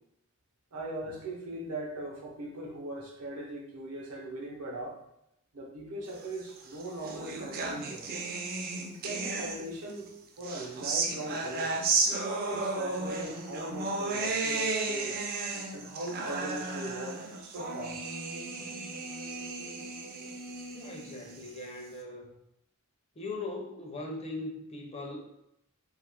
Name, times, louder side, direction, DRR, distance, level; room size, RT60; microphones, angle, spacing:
voice 1, 0.7-5.0 5.5-8.1 9.0-10.1 10.4-11.8 12.5-15.2 15.7-18.0, right 1 dB, 80° right, 0 dB, 0.7 m, -40 dB
sound 1, 6.5-9.9 10.4-21.9, right 3 dB, 45° right, 0.4 m, -34 dB
voice 2, 20.7-22.3 23.2-25.2, left 2 dB, 30° left, 1 dB, 0.5 m, -39 dB
2.7 x 2.4 x 3.4 m, 0.80 s
head